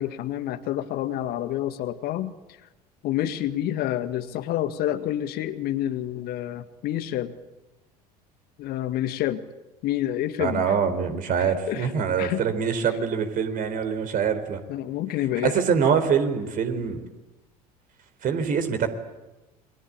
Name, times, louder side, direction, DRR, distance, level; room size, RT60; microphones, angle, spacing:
voice 1, 0.0-2.3 3.0-7.3 8.6-9.4 9.8-11.0 11.4-11.9 12.2-12.4 14.7-15.6, left 12 dB, 55° left, 10 dB, 1.8 m, -28 dB
voice 2, 10.4-14.6 15.4-17.0 18.2-18.9, right 6 dB, 45° right, 9 dB, 4.1 m, -24 dB
29.0 x 23.0 x 8.7 m, 1.0 s
figure-of-eight pair, 65°, 20 cm